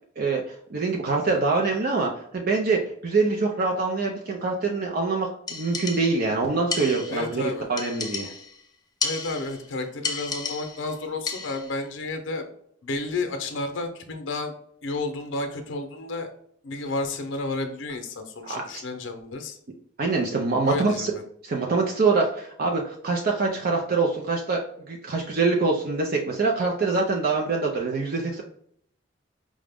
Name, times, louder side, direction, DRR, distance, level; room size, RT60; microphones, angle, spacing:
voice 1, 0.2-8.3 18.4-18.6 20.0-21.1 21.4-28.4, right 3 dB, 50° right, 0 dB, 0.5 m, -25 dB
sound 1, 5.5-6.3 6.7-7.3 7.8-8.6 9.0-9.7 10.0-10.9 11.3-11.8, left 4 dB, 20° left, 0.5 m, -32 dB
voice 2, 7.1-7.7 9.0-12.4 12.8-14.5 14.8-16.3 16.6-19.6 20.6-21.2, left 2 dB, 75° left, 5 dB, 0.6 m, -31 dB
4.8 x 2.1 x 3.4 m, 0.67 s
head